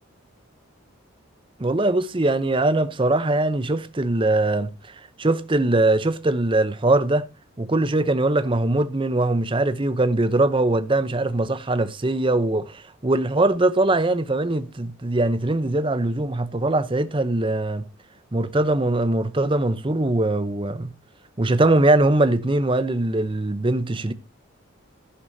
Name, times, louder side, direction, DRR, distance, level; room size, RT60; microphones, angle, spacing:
voice 1, 1.6-7.3 7.6-17.8 18.3-20.9 21.4-24.1, right 2 dB, 25° right, 0.7 m, -21 dB
12.0 x 11.0 x 2.7 m
head